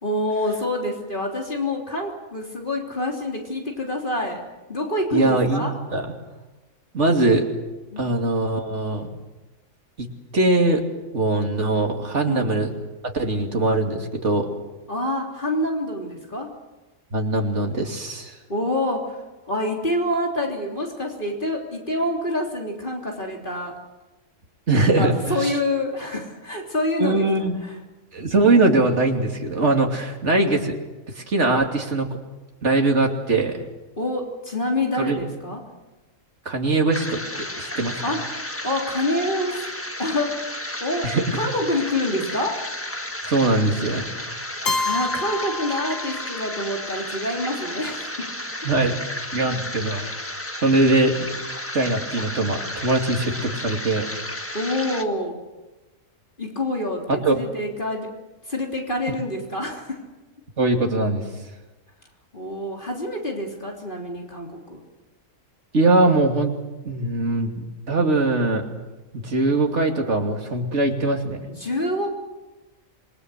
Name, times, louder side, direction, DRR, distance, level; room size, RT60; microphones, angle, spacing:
voice 1, 0.0-4.4 4.7-5.7 7.9-8.1 12.2-12.4 14.9-16.5 18.5-19.2 19.5-23.8 25.0-27.3 34.0-35.6 38.0-38.2 38.6-39.7 40.0-43.0 44.9-48.3 54.5-55.4 56.4-58.2 58.5-60.0 62.3-64.8 71.5-72.1, left 1 dB, 40° left, 1 dB, 3.6 m, -27 dB
voice 2, 5.1-6.1 6.9-7.4 8.0-9.1 10.0-10.1 10.3-10.8 11.1-12.7 13.1-14.5 17.1-18.4 24.7-25.6 27.0-27.6 28.1-30.7 31.1-32.1 32.6-33.7 35.0-35.2 36.4-38.0 41.0-41.4 43.3-44.1 48.6-49.0 49.3-50.1 50.6-51.3 51.7-54.1 57.1-57.4 60.6-61.2 65.7-66.5 66.8-68.6 69.1-71.4, right 2 dB, 60° right, 3 dB, 3.1 m, -21 dB
sound 1, 36.9-55.0, left 1 dB, 10° left, 1.5 m, -33 dB
Keyboard (musical), 44.6-46.6, left 3 dB, 85° left, 1.7 m, -28 dB
27.0 x 21.5 x 8.0 m, 1.1 s
omnidirectional pair, 1.3 m